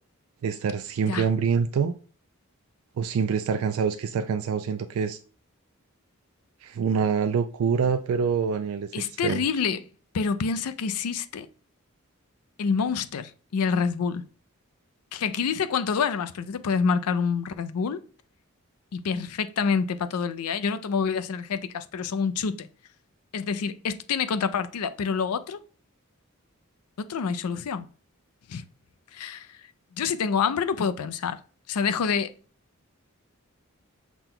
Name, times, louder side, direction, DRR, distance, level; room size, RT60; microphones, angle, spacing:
voice 1, 0.4-2.0 3.0-5.2 6.6-8.9 9.2-9.5, right 6 dB, 75° right, 0.3 m, -25 dB
voice 2, 8.9-9.8 10.1-11.5 12.6-14.2 15.1-18.0 18.9-22.7 23.3-25.6 27.0-27.9 28.5-28.6 29.1-29.6 29.9-31.4 31.7-32.3, left 6 dB, 90° left, 0.4 m, -27 dB
6.0 x 2.2 x 3.7 m
head